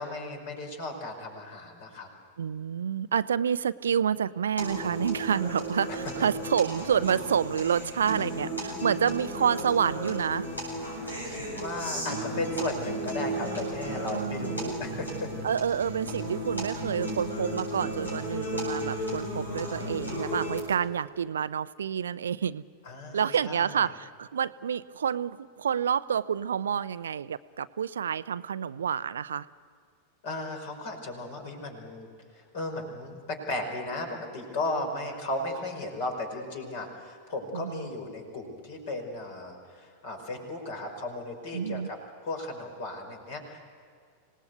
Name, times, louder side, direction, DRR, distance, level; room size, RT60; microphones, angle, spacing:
voice 1, 0.0-2.1 5.9-6.0 11.2-15.3 22.8-23.8 30.2-32.1 32.3-42.0 42.2-43.7, left 2 dB, 50° left, 4 dB, 5.1 m, -35 dB
voice 2, 2.4-10.5 14.1-14.7 15.4-22.6 23.1-29.5 37.5-37.9 41.5-41.9, right 8 dB, 65° right, 16 dB, 0.5 m, -28 dB
sound 1, 4.6-20.6, right 1 dB, 85° left, 7.9 m, -34 dB
26.0 x 18.5 x 8.1 m, 2.2 s
figure-of-eight pair, 90°, 0 cm